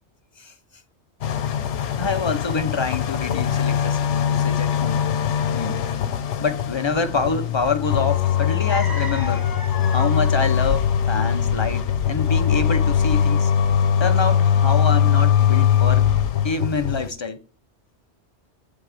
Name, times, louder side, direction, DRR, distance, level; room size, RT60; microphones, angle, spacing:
sound 1, 1.2-17.1, left 8 dB, 90° left, 1.0 m, -21 dB
voice 1, 2.0-5.0 5.5-5.8 6.4-9.5 9.9-13.5 14.0-16.1 16.4-17.4, left 4 dB, 40° left, 0.4 m, -26 dB
sound 2, 8.7-13.7, left 2 dB, 20° left, 1.0 m, -34 dB
9.0 x 3.4 x 4.9 m
omnidirectional pair, 1.2 m